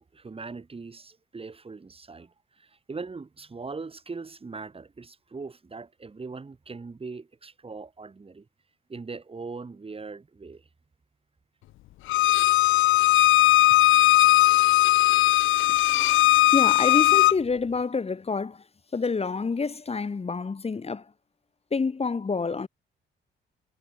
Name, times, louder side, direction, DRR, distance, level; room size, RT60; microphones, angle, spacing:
voice 1, 0.0-8.5 8.9-10.6 13.1-13.2 13.7-13.8, right 4 dB, 30° right, 5.0 m, -40 dB
Bowed string instrument, 12.1-17.3, left 16 dB, 85° left, 0.8 m, -19 dB
voice 2, 16.5-18.7 18.9-21.1 21.7-22.7, left 4 dB, 30° left, 3.5 m, -28 dB
cardioid pair, 90°, 20 cm